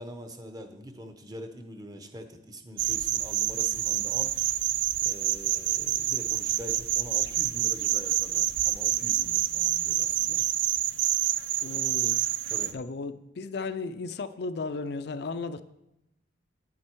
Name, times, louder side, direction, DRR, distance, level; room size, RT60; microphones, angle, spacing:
voice 1, 0.0-4.3 5.0-10.5 12.5-12.7, equal, 20° right, 7 dB, 0.7 m, -43 dB
sound 1, 2.8-12.7, right 13 dB, 65° right, 0.4 m, -27 dB
voice 2, 11.6-12.2 12.7-15.6, left 3 dB, 55° left, 13 dB, 0.4 m, -35 dB
9.4 x 7.5 x 4.5 m, 0.91 s
head